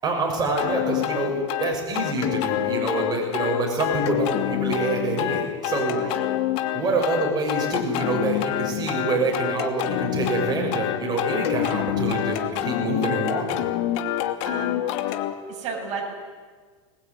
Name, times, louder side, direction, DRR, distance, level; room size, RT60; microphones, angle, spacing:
voice 1, 0.0-6.0 6.7-13.6, right 2 dB, 25° right, 0 dB, 6.8 m, -26 dB
sound 1, 0.6-15.3, left 13 dB, 60° left, 2.6 m, -27 dB
voice 2, 6.0-6.3 6.8-6.9 14.4-14.8 15.5-16.1, right 5 dB, 45° right, 0 dB, 7.7 m, -33 dB
25.5 x 20.0 x 9.7 m, 1.5 s
supercardioid pair, 125°, 16 cm